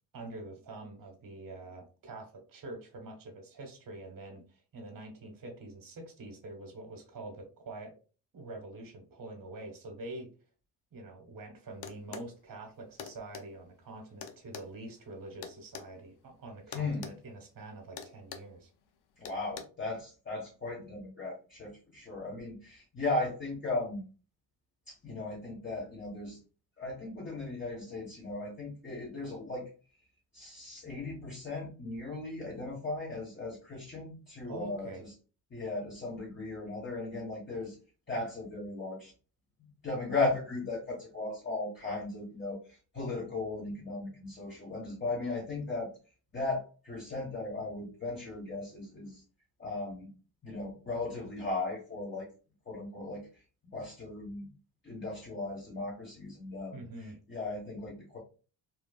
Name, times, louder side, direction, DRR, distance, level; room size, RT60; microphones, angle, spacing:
voice 1, 0.1-7.9 8.3-10.3 10.9-18.7 34.4-35.0 56.7-57.2, right 2 dB, 45° right, 4 dB, 1.2 m, -45 dB
sound 1, 11.8-12.3 13.0-13.5 14.2-15.9 16.7-17.2 17.4-17.6 18.0-18.5 19.3-19.6, left 7 dB, 55° left, 0.6 m, -44 dB
voice 2, 16.7-17.1 19.2-24.0 24.9-26.4 26.8-29.7 30.3-35.1 35.5-37.8 38.1-39.1 39.8-45.9 46.3-49.2 49.6-50.1 50.4-52.3 52.6-53.3 53.7-54.5 54.8-56.8 57.3-58.2, left 2 dB, 25° left, -5 dB, 1.3 m, -37 dB
3.1 x 2.3 x 2.3 m, 0.36 s
supercardioid pair, 60°, 47 cm